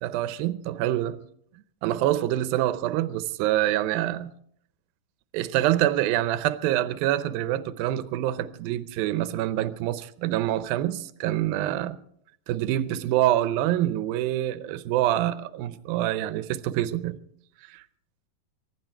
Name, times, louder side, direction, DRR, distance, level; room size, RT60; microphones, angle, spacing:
voice 1, 0.0-1.2 1.8-4.3 5.3-12.0 12.5-17.2 17.7-17.8, right 13 dB, 85° right, 2.5 m, -26 dB
24.0 x 11.5 x 4.5 m
omnidirectional pair, 4.1 m